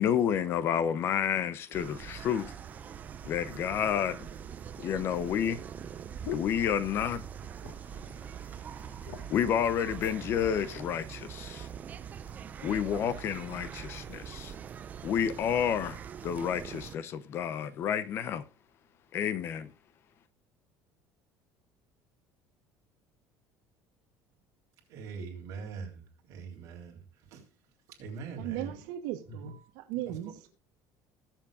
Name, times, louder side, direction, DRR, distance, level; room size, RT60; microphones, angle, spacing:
voice 1, 0.0-2.5 3.2-4.2 4.8-5.6 6.3-7.2 9.3-11.7 12.6-14.5 15.0-18.4 19.1-19.7, left 8 dB, 35° left, 0.7 m, -30 dB
sound 1, 1.7-17.0, right 8 dB, 25° right, 0.4 m, -43 dB
sound 2, 3.2-3.3 4.2-7.3 7.6-8.0 8.4-8.5 8.8-9.5 10.2-10.9 11.6-11.8, left 8 dB, 65° left, 1.2 m, -46 dB
voice 2, 24.9-27.5 27.9-28.8 29.3-29.5 30.1-30.2, right 4 dB, 50° right, 3.7 m, -42 dB
voice 3, 28.4-30.3, right 14 dB, 80° right, 1.1 m, -37 dB
20.0 x 7.3 x 2.5 m
cardioid pair, 180°, 7 cm